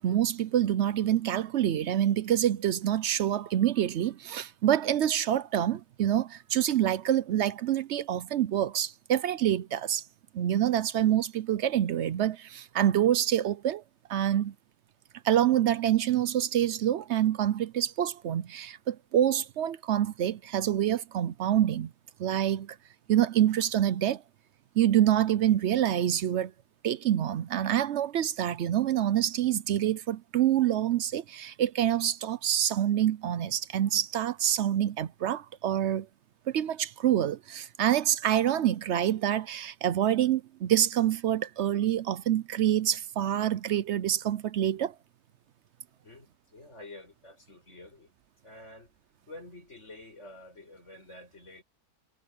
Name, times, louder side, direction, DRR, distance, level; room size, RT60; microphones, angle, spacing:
voice 1, 0.0-10.0 10.3-13.8 14.1-14.5 15.2-21.9 22.2-22.8 23.1-24.2 24.8-26.5 26.8-36.1 36.5-44.9, right 11 dB, 65° right, 0.7 m, -26 dB
voice 2, 46.0-48.1 48.4-49.0 49.3-51.6, left 2 dB, 45° left, 7.7 m, -49 dB
omnidirectional pair, 1.7 m